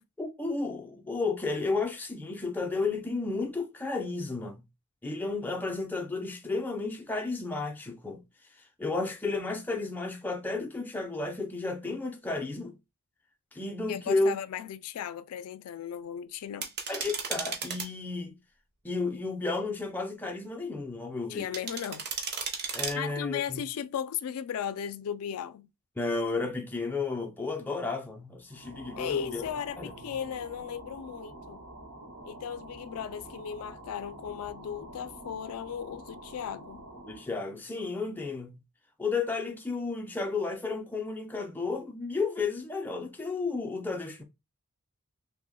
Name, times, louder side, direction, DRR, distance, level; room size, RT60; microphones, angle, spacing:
voice 1, 0.2-4.6 5.0-8.2 8.8-12.7 13.5-14.3 16.9-18.4 18.8-21.5 22.7-23.6 26.0-29.4 29.8-29.9 37.1-38.6 39.0-44.2, left 3 dB, 10° left, 0.4 m, -32 dB
voice 2, 13.9-16.7 21.3-22.1 22.7-25.7 29.0-31.7 32.2-36.9, left 8 dB, 75° left, 0.3 m, -36 dB
sound 1, 16.6-17.9 21.5-22.9, right 5 dB, 45° right, 0.6 m, -34 dB
sound 2, 28.5-37.3, right 1 dB, 75° right, 0.8 m, -47 dB
2.9 x 2.0 x 3.7 m
head